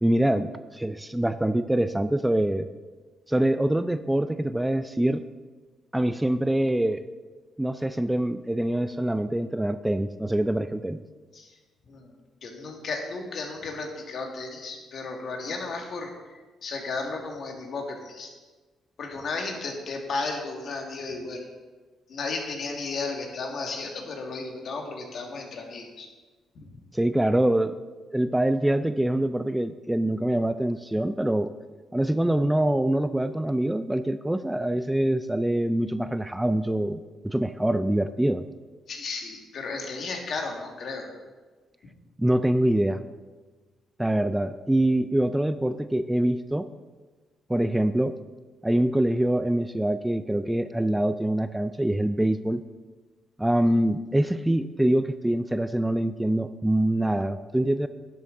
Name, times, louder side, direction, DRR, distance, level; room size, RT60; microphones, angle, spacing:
voice 1, 0.0-2.7 3.3-5.2 5.9-7.0 7.6-11.0 26.9-27.8 28.1-31.5 31.9-38.4 42.2-43.0 44.0-46.7 47.5-48.1 48.6-52.6 53.4-57.9, right 1 dB, 5° right, 11 dB, 0.3 m, -24 dB
voice 2, 12.4-18.3 19.0-21.5 22.1-26.1 26.6-26.7 38.9-41.1, left 3 dB, 60° left, 2 dB, 1.8 m, -34 dB
11.5 x 7.8 x 3.8 m, 1.3 s
cardioid pair, 90°, 0 cm